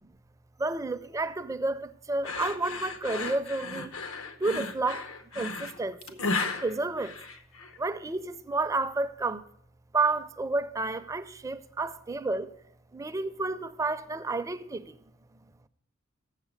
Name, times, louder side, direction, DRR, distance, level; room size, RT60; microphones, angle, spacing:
voice 1, 0.6-3.9 4.4-5.1 5.3-7.2 7.8-9.4 9.9-12.5 12.9-15.0, right 3 dB, 15° right, 0.4 m, -31 dB
sound 1, 2.2-7.8, left 3 dB, 80° left, 0.8 m, -34 dB
7.4 x 6.7 x 8.1 m
head